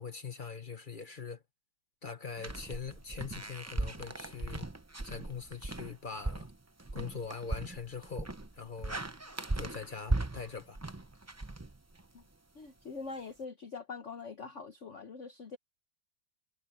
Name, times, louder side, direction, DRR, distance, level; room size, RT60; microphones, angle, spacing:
voice 1, 0.0-1.4 2.0-4.7 5.0-6.5 6.9-9.0 9.5-10.8, left 5 dB, 30° left, 1.1 m, -42 dB
sound 1, 2.4-12.2, right 2 dB, 20° right, 0.4 m, -38 dB
voice 2, 12.5-15.6, left 4 dB, 50° left, 1.3 m, -43 dB
omnidirectional pair, 1.9 m